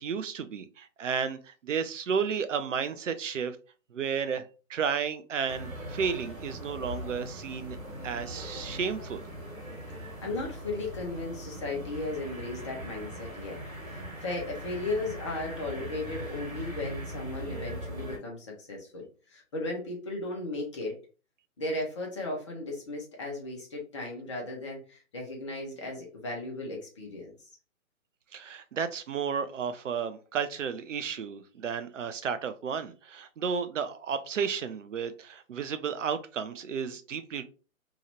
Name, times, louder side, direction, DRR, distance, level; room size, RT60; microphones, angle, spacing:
voice 1, 0.0-3.6 3.9-7.8 8.0-9.3 28.3-37.4, right 6 dB, 65° right, 12 dB, 0.5 m, -32 dB
sound 1, 5.5-18.2, equal, 90° right, 1.4 m, -40 dB
voice 2, 10.2-21.0 21.6-27.5, left 2 dB, 20° left, -1 dB, 0.6 m, -36 dB
2.9 x 2.3 x 2.9 m, 0.35 s
figure-of-eight pair, 135°, 41 cm